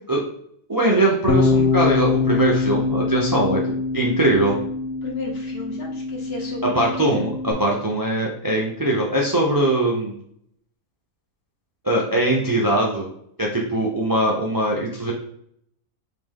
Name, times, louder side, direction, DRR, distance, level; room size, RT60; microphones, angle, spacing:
voice 1, 0.7-3.6 3.9-4.6 6.6-10.1 11.8-13.1 13.4-15.1, right 1 dB, 25° right, -3 dB, 0.5 m, -21 dB
Bass guitar, 1.3-7.5, left 4 dB, 90° left, 1.2 m, -23 dB
voice 2, 5.0-7.2, left 3 dB, 50° left, -1 dB, 1.3 m, -34 dB
5.0 x 2.9 x 3.7 m, 0.68 s
omnidirectional pair, 1.4 m